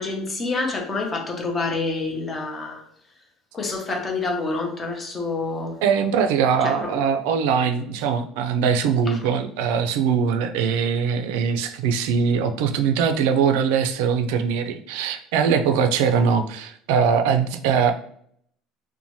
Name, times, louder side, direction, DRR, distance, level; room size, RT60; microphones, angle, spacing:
voice 1, 0.0-2.8 3.5-5.8 6.6-6.9 9.1-9.2, left 3 dB, 20° left, 0.6 m, -27 dB
voice 2, 5.8-17.9, right 6 dB, 85° right, 0.3 m, -21 dB
2.6 x 2.1 x 3.0 m
cardioid pair, 160°, 0 cm